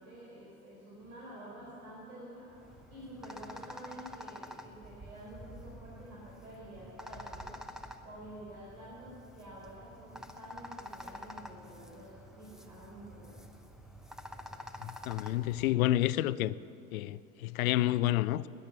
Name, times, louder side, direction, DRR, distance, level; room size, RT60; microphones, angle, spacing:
voice 1, 0.0-7.5 8.0-13.4, right 1 dB, 85° right, 4.0 m, -49 dB
sound 1, 2.5-15.7, equal, ahead, 0.9 m, -48 dB
voice 2, 14.8-16.5 16.9-18.5, left 15 dB, 75° left, 0.6 m, -29 dB
17.5 x 10.5 x 7.5 m
hypercardioid pair, 90°, 42 cm